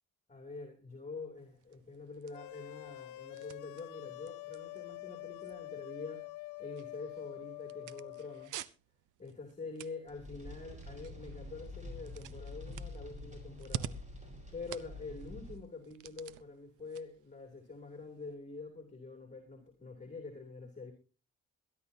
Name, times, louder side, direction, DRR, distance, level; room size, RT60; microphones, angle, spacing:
voice 1, 0.3-6.3 6.6-8.7 9.2-14.0 14.5-20.9, left 3 dB, 25° left, 3 dB, 3.1 m, -46 dB
sound 1, 1.4-18.3, right 12 dB, 90° right, 0.8 m, -51 dB
sound 2, 2.3-8.5, left 19 dB, 90° left, 0.6 m, -46 dB
sound 3, 10.1-15.6, left 2 dB, 25° right, 5.8 m, -47 dB
22.5 x 11.0 x 2.8 m, 0.33 s
cardioid pair, 90°, 30 cm